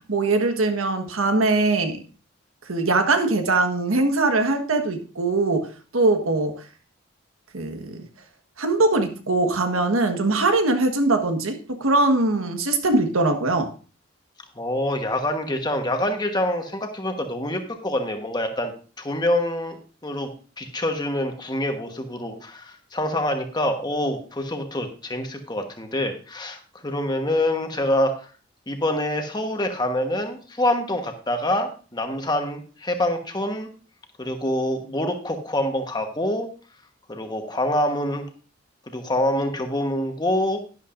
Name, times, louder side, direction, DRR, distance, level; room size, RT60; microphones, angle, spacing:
voice 1, 0.1-2.0 2.7-6.5 7.5-8.0 8.6-13.7, right 2 dB, 90° right, 6 dB, 1.4 m, -21 dB
voice 2, 14.5-18.7 19.0-20.3 20.6-28.1 28.7-33.7 34.2-36.5 37.1-38.3 38.9-40.6, left 1 dB, 20° left, 5 dB, 1.2 m, -26 dB
11.5 x 11.0 x 2.5 m, 0.37 s
head